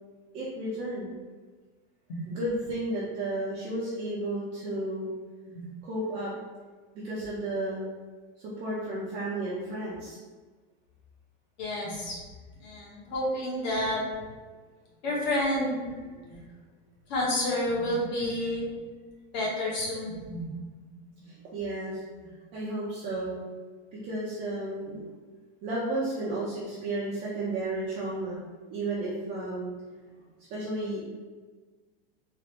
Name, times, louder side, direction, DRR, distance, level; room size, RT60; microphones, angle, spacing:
voice 1, 0.3-1.1 2.3-5.1 5.8-6.3 7.0-7.9 8.4-10.2 21.2-22.0 22.5-23.4 24.0-25.0 25.6-28.4 28.7-29.7 30.5-31.1, right 1 dB, 25° right, -8 dB, 0.6 m, -32 dB
voice 2, 11.6-12.2 12.6-14.0 15.0-15.8 16.3-16.4 17.1-18.7 19.3-20.5, left 1 dB, 45° left, -4 dB, 1.3 m, -29 dB
3.9 x 2.6 x 3.3 m, 1.4 s
supercardioid pair, 170°, 30 cm